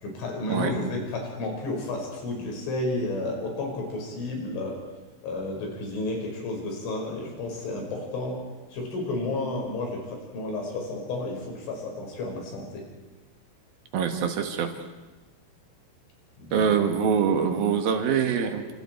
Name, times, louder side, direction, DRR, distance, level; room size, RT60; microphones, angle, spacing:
voice 1, 0.0-4.8 5.2-8.4 8.7-12.9 16.4-16.7, left 2 dB, 75° left, 0 dB, 7.7 m, -32 dB
voice 2, 13.9-14.7 16.5-18.7, right 7 dB, 60° right, 5 dB, 3.0 m, -24 dB
29.5 x 27.0 x 4.5 m, 1.2 s
omnidirectional pair, 5.5 m